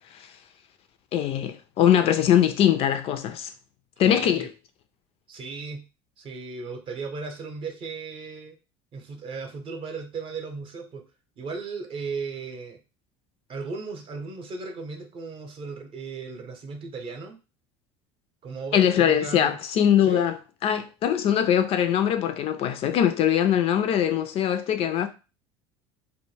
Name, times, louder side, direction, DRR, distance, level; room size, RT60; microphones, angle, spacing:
voice 1, 1.1-3.5 4.0-4.5 18.7-20.3 20.6-25.1, left 9 dB, 45° left, 0.4 m, -22 dB
voice 2, 4.0-4.5 5.3-5.8 6.2-8.5 8.9-11.0 11.4-12.8 13.5-17.4 18.4-19.6 20.0-20.3, right 4 dB, 40° right, 0.7 m, -36 dB
2.1 x 2.1 x 3.2 m
hypercardioid pair, 75°, 14 cm